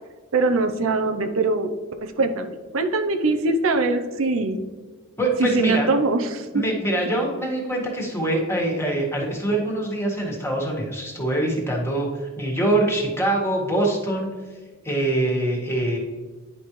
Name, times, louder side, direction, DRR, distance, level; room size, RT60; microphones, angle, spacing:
voice 1, 0.3-1.7 2.0-4.6 5.4-6.6, right 3 dB, 75° right, 6 dB, 0.7 m, -22 dB
voice 2, 5.2-5.9 6.5-14.3 14.8-16.0, right 1 dB, 10° left, -1 dB, 1.7 m, -24 dB
10.0 x 5.3 x 3.1 m, 1.4 s
head